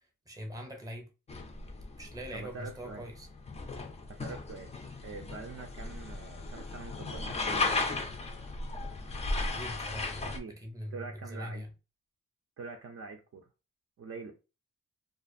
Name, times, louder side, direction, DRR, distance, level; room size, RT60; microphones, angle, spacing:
voice 1, 0.3-1.1 2.0-3.3 9.5-11.7, equal, 10° right, 0.6 m, -42 dB
sound 1, 1.3-10.4, left 3 dB, 20° left, 0.3 m, -36 dB
voice 2, 2.3-3.1 4.1-4.7 5.0-7.8 10.3-10.6 10.9-11.7 12.6-13.5 14.0-14.3, right 4 dB, 50° right, 0.4 m, -44 dB
2.4 x 2.4 x 2.5 m
wide cardioid pair, 140°, 32 cm